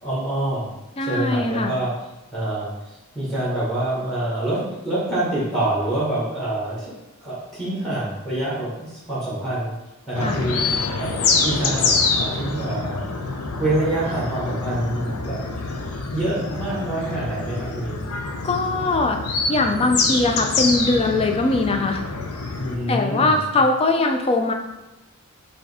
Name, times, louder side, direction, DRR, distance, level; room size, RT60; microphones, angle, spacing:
voice 1, 0.0-0.7 1.0-1.9 2.3-6.9 7.2-9.7 10.1-11.1 11.4-15.4 16.1-18.0 22.5-23.6, right 1 dB, ahead, -8 dB, 1.2 m, -26 dB
voice 2, 1.0-1.7 10.2-10.4 18.4-19.2 19.5-22.0 22.9-24.5, left 2 dB, 25° left, 4 dB, 0.4 m, -21 dB
sound 1, 10.1-22.8, left 4 dB, 85° left, 0.6 m, -26 dB
4.6 x 2.8 x 3.4 m, 0.98 s
head